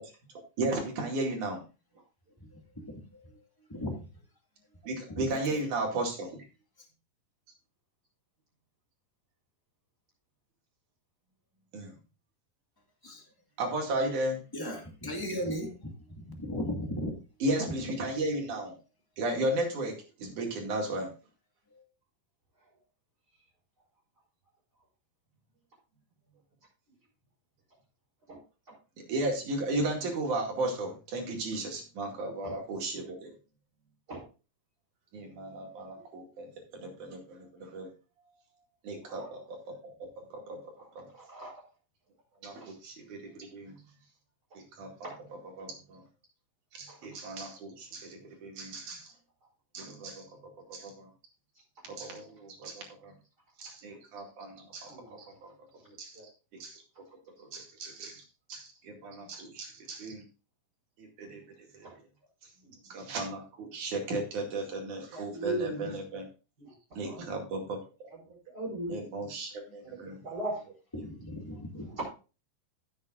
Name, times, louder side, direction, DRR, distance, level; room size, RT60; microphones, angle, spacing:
voice 1, 0.6-1.6 4.8-6.5 11.7-11.9 13.6-14.4 17.4-18.8 19.2-21.1 29.0-33.3 35.1-37.9 38.8-40.6 41.0-41.1 42.4-43.8 44.6-44.9 45.6-46.0 46.7-49.1 49.7-50.3 50.7-51.1 51.8-53.1 53.6-55.5 56.0-56.2 56.5-56.8 57.4-58.2 58.5-60.2 61.0-61.4 61.7-61.9 62.4-62.5 62.8-66.3 67.0-68.1 68.9-70.2 71.0-71.1, right 2 dB, 60° right, 1 dB, 3.7 m, -35 dB
voice 2, 2.4-3.3 3.7-4.1 5.1-5.6 13.0-13.2 14.5-17.1 21.7-21.8 70.9-72.0, equal, 15° left, 1 dB, 0.9 m, -37 dB
voice 3, 39.0-39.4 40.8-41.5 42.6-42.7 45.0-45.2 46.9-47.0 54.9-55.2 55.8-56.2 58.5-58.6 61.8-61.9 62.6-62.7 65.1-65.9 66.6-67.3 68.3-68.9 69.8-70.7 71.7-72.0, right 2 dB, 25° right, -8 dB, 5.6 m, -39 dB
15.5 x 8.0 x 2.5 m, 0.32 s
omnidirectional pair, 4.0 m